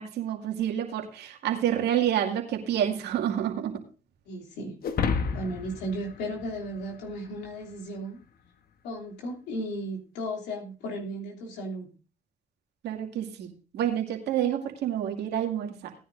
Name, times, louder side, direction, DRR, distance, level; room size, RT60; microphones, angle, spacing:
voice 1, 0.0-3.8 12.8-15.9, right 10 dB, 75° right, 3 dB, 2.3 m, -28 dB
voice 2, 4.3-4.7 5.3-8.2 8.8-11.9, equal, 80° left, -1 dB, 3.0 m, -35 dB
sound 1, 4.8-7.3, left 5 dB, 60° left, 1.1 m, -31 dB
18.0 x 10.0 x 2.6 m, 0.35 s
supercardioid pair, 60°, 17 cm